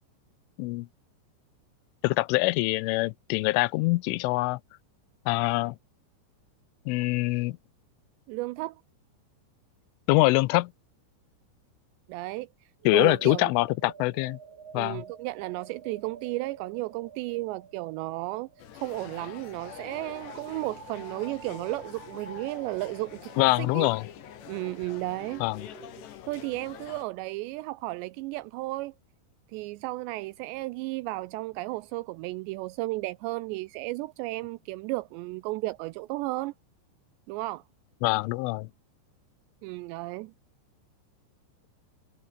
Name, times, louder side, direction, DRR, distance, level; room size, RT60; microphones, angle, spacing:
voice 1, 2.0-4.6 5.3-5.8 6.9-7.6 10.1-10.7 12.9-14.4 14.7-15.0 23.4-24.1 25.4-25.7 38.0-38.7, left 22 dB, 90° left, 3.2 m, -24 dB
voice 2, 8.3-8.8 12.1-12.5 12.9-13.5 14.8-18.5 18.7-23.3 23.6-23.9 24.5-25.4 26.3-28.9 29.5-36.5 37.3-37.6 39.6-40.3, right 20 dB, 85° right, 2.5 m, -34 dB
sound 1, 12.8-26.1, right 6 dB, 40° right, 3.1 m, -50 dB
sound 2, 18.6-27.1, left 11 dB, 70° left, 4.0 m, -46 dB
omnidirectional pair, 5.5 m